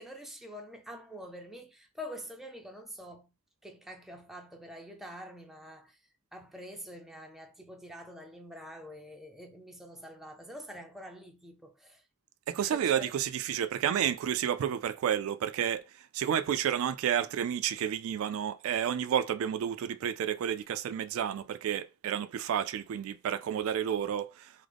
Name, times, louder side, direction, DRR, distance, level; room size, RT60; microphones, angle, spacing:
voice 1, 0.0-3.3 3.6-6.0 6.3-12.1 12.5-13.1, equal, ahead, 0.5 m, -46 dB
voice 2, 12.5-15.8 16.1-24.5, right 9 dB, 75° right, 0.3 m, -30 dB
3.7 x 2.0 x 3.3 m
head